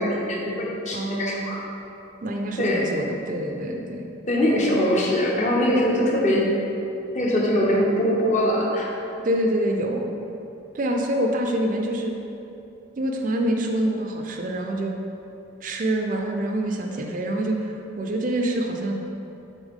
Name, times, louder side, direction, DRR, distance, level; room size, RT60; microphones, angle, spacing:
voice 1, 0.0-1.6 2.6-2.9 4.3-6.5 7.1-8.9, equal, 40° left, -3 dB, 0.8 m, -22 dB
voice 2, 0.9-1.6 2.2-4.1 9.2-10.1 10.7-12.2 13.0-15.0 15.6-19.0, right 1 dB, 45° right, 2 dB, 0.4 m, -26 dB
7.1 x 4.0 x 3.6 m, 2.8 s
head